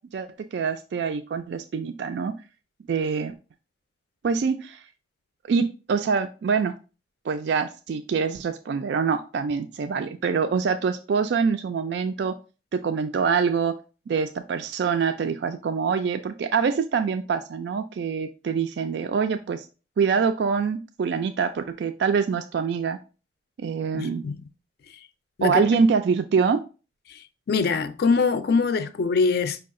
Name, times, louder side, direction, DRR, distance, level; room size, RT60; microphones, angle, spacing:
voice 1, 0.1-2.3 2.9-3.3 4.2-4.8 5.5-6.7 7.3-12.4 12.7-13.8 14.1-19.6 20.0-23.0 23.6-24.2 25.4-26.6, right 5 dB, 70° right, 0.3 m, -25 dB
voice 2, 23.9-24.4 25.4-25.7 27.5-29.6, left 4 dB, 60° left, 0.4 m, -23 dB
5.7 x 2.3 x 3.6 m
head